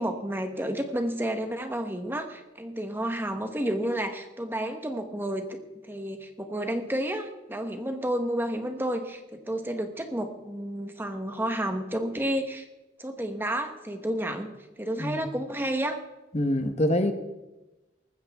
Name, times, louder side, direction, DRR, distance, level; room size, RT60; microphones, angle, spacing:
voice 1, 0.0-5.6 5.9-12.6 13.0-14.5 14.8-16.0, right 1 dB, 10° right, 6 dB, 1.1 m, -31 dB
voice 2, 16.3-17.1, left 1 dB, 35° left, 7 dB, 1.0 m, -25 dB
19.5 x 15.0 x 3.5 m, 1.1 s
head